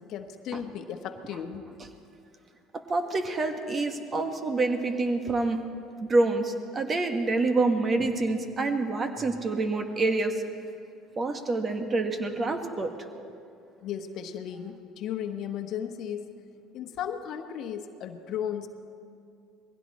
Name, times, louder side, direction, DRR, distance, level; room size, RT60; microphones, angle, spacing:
voice 1, 0.1-1.6 13.8-16.3 16.7-18.7, left 9 dB, 60° left, 7 dB, 1.1 m, -35 dB
voice 2, 2.7-5.6 6.0-10.4 11.2-12.9, right 3 dB, 35° right, 6 dB, 1.5 m, -27 dB
21.0 x 16.0 x 4.2 m, 2.5 s
supercardioid pair, 80°, 0 cm